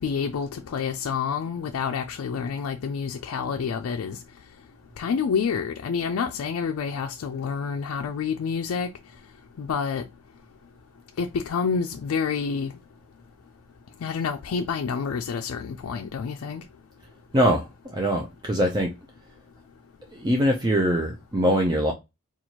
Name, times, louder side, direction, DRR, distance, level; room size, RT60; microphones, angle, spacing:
voice 1, 0.0-4.2 5.0-8.9 9.6-10.0 11.2-12.7 14.0-16.6, left 6 dB, 75° left, 0.4 m, -28 dB
voice 2, 17.3-18.9 20.1-21.9, equal, 20° right, 0.5 m, -23 dB
4.4 x 2.3 x 2.8 m
head